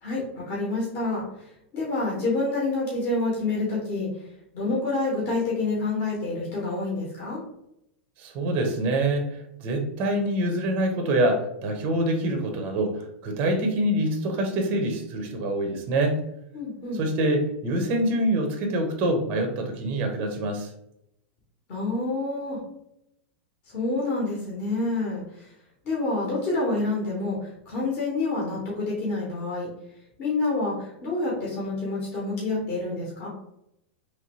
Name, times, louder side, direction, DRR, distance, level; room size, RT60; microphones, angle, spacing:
voice 1, 0.0-4.3 4.5-7.4 16.5-17.0 21.7-22.6 23.7-25.5 25.8-29.7 30.2-33.3, left 2 dB, 30° left, -5 dB, 0.9 m, -28 dB
voice 2, 8.2-16.2 16.9-20.7, right 1 dB, 30° right, 4 dB, 0.5 m, -25 dB
3.0 x 2.6 x 3.0 m, 0.78 s
supercardioid pair, 175°, 6 cm